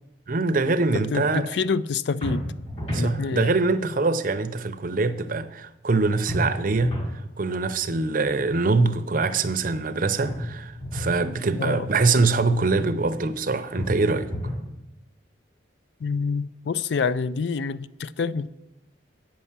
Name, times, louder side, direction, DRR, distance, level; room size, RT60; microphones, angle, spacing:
voice 1, 0.3-1.5 2.9-6.9 7.4-14.3, right 3 dB, 45° right, 0.6 m, -23 dB
voice 2, 1.1-2.4 3.0-3.6 11.6-11.9 16.0-18.5, left 5 dB, 60° left, 0.4 m, -27 dB
sound 1, 2.2-3.1 6.3-7.2 10.3-11.2 13.8-14.7, equal, 35° left, 4.0 m, -30 dB
9.0 x 5.5 x 7.2 m
head